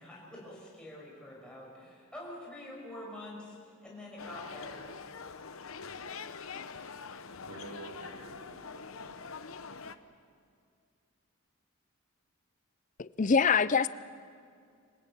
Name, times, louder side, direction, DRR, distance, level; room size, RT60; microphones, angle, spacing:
voice 1, 0.0-3.6 3.8-4.9, left 1 dB, 5° left, 5.7 m, -46 dB
sound 1, 4.2-10.0, left 5 dB, 70° left, 0.9 m, -44 dB
voice 2, 7.5-9.5, right 2 dB, 70° right, 3.0 m, -49 dB
voice 3, 13.0-13.9, left 5 dB, 35° left, 0.5 m, -24 dB
26.0 x 16.5 x 8.7 m
head